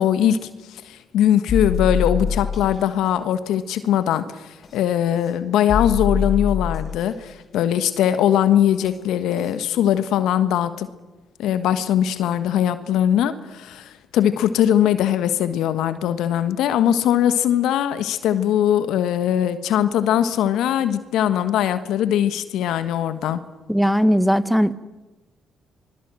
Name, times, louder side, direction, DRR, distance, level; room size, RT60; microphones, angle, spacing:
voice 1, 0.0-10.9 11.4-23.4, left 10 dB, 75° left, 12 dB, 1.4 m, -21 dB
sound 1, 1.5-2.8 4.6-4.7 5.7-7.0 8.8-8.9 9.4-9.5, left 5 dB, 50° left, 5.0 m, -24 dB
voice 2, 23.7-24.7, equal, ahead, 14 dB, 1.5 m, -18 dB
26.5 x 21.5 x 7.7 m, 1.1 s
hypercardioid pair, 50°, 0 cm